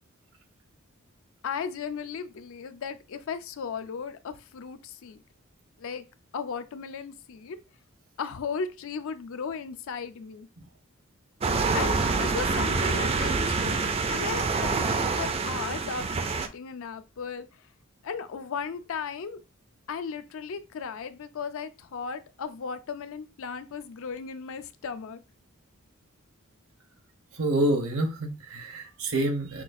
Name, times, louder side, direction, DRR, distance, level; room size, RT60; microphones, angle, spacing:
voice 1, 1.4-5.2 5.8-6.0 6.3-7.6 8.2-10.5 11.7-17.5 18.0-19.4 19.9-25.2, left 6 dB, 65° left, 0.4 m, -36 dB
sound 1, 11.4-16.5, right 4 dB, 30° right, 0.4 m, -26 dB
voice 2, 27.3-29.6, right 1 dB, 80° right, 1.0 m, -27 dB
5.9 x 2.3 x 2.5 m
head